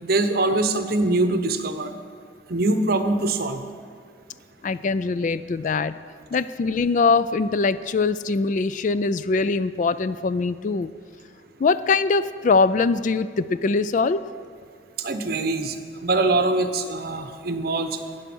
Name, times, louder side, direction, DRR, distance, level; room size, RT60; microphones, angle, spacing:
voice 1, 0.0-1.9 2.5-3.6 15.0-15.7 16.0-17.9, right 2 dB, 55° right, 8 dB, 0.9 m, -23 dB
voice 2, 4.6-6.0 6.3-10.9 11.6-14.2, left 4 dB, 40° left, 15 dB, 0.3 m, -22 dB
12.5 x 9.4 x 6.1 m, 2.1 s
head